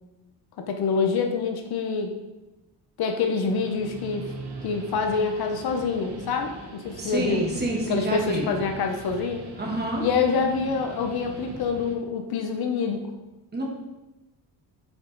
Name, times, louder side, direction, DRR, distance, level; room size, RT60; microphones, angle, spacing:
voice 1, 0.6-2.1 3.0-4.3 4.6-7.5 7.9-9.4 10.0-13.0, left 5 dB, 60° left, 5 dB, 0.8 m, -26 dB
Guitar, 3.3-12.0, right 2 dB, 65° right, 1.1 m, -41 dB
voice 2, 7.0-8.5 9.6-10.0 13.5-13.6, right 1 dB, 25° right, -1 dB, 1.2 m, -28 dB
5.3 x 4.6 x 3.9 m, 1.0 s
cardioid pair, 140°, 42 cm